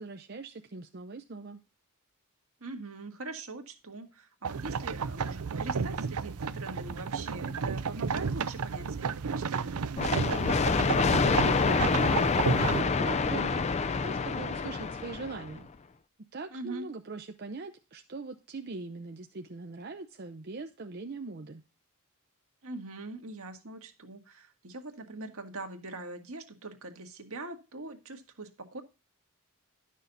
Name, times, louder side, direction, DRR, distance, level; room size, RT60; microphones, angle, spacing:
voice 1, 0.0-1.6 10.9-15.7 16.3-21.6, right 3 dB, 45° right, 0.6 m, -41 dB
voice 2, 2.6-9.8 16.5-16.9 22.6-28.8, right 2 dB, 70° right, 1.7 m, -42 dB
sound 1, 4.4-12.8, right 5 dB, 85° right, 0.6 m, -32 dB
sound 2, 10.0-15.6, left 4 dB, 30° left, 0.4 m, -27 dB
11.5 x 6.4 x 4.0 m
head